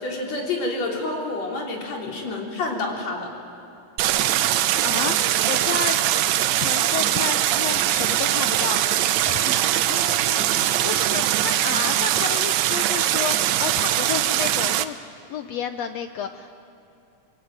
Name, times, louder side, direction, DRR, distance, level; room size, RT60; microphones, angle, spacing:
voice 1, 0.0-3.3, left 2 dB, 55° left, 0 dB, 4.7 m, -28 dB
Stream, 4.0-14.9, right 12 dB, 75° right, 1.9 m, -22 dB
voice 2, 4.8-6.2 6.6-8.8 9.2-9.6 9.9-10.5 10.8-15.0 15.3-16.5, left 7 dB, 75° left, 8 dB, 1.6 m, -31 dB
28.0 x 22.0 x 8.9 m, 2.7 s
omnidirectional pair, 3.7 m